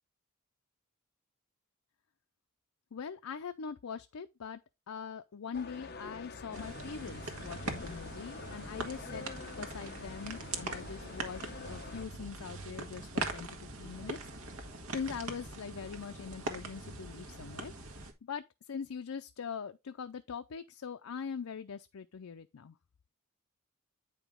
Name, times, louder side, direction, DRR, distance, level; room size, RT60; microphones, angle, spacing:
voice 1, 2.9-4.6 4.9-9.3 9.6-17.7 18.2-22.8, left 6 dB, 80° left, 0.5 m, -42 dB
sound 1, 5.5-12.1, left 4 dB, 45° left, 0.8 m, -47 dB
sound 2, 6.5-18.1, right 3 dB, 85° right, 1.5 m, -42 dB
9.1 x 5.0 x 3.6 m
head